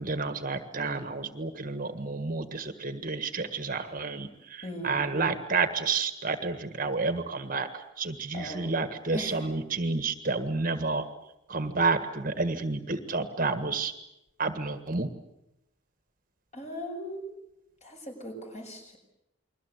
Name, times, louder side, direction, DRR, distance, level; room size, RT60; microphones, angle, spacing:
voice 1, 0.0-7.7 8.0-11.0 11.5-13.9 14.4-15.1, right 4 dB, 40° right, 9 dB, 1.5 m, -30 dB
voice 2, 4.6-5.0 8.3-8.7 9.1-9.5 16.5-17.2 17.8-19.0, equal, 35° left, 3 dB, 6.8 m, -38 dB
29.5 x 22.0 x 8.2 m, 0.87 s
head